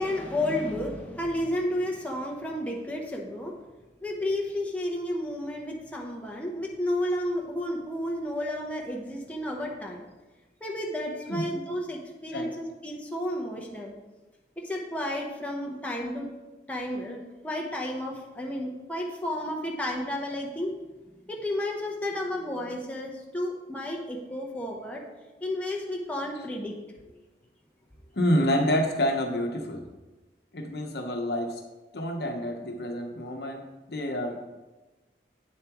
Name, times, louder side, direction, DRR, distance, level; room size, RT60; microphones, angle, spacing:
voice 1, 0.0-3.5 4.0-10.0 10.6-13.9 14.6-16.3 16.7-20.8 21.3-25.0 25.4-26.8, left 1 dB, 10° left, -1 dB, 0.9 m, -32 dB
voice 2, 28.1-29.8 30.5-31.6 31.9-33.6 33.9-34.4, equal, 65° left, 3 dB, 0.9 m, -28 dB
8.5 x 7.4 x 3.0 m, 1.2 s
head